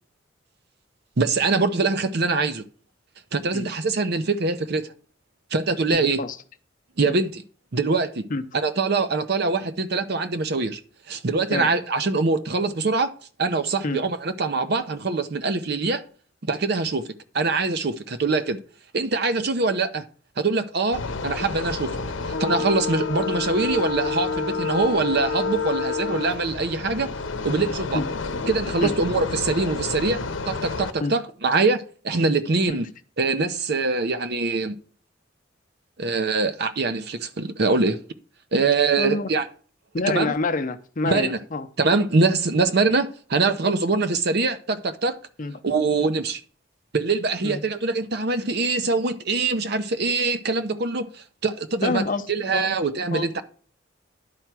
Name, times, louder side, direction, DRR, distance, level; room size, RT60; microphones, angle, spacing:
voice 1, 1.2-2.6 3.3-4.9 5.5-6.2 7.0-7.4 7.7-8.2 8.5-10.8 11.1-13.1 13.4-16.0 16.5-17.1 17.3-18.6 18.9-20.0 20.4-21.9 22.3-27.1 27.4-28.0 28.5-32.9 33.2-34.8 36.0-38.0 38.5-39.4 40.1-40.3 41.0-41.4 41.8-45.1 45.6-46.4 46.9-53.4, right 3 dB, 55° right, 0.7 m, -23 dB
voice 2, 6.0-6.4 7.1-7.2 8.3-8.4 11.5-11.7 13.8-14.0 27.9-28.1 28.8-28.9 31.0-31.1 32.7-32.8 39.0-39.3 39.9-41.7 45.4-45.6 47.4-47.6 51.8-52.2 52.5-52.7 53.1-53.3, left 3 dB, 45° left, 0.7 m, -27 dB
sound 1, 20.9-30.9, left 4 dB, 90° left, 0.8 m, -29 dB
10.5 x 4.5 x 6.0 m
head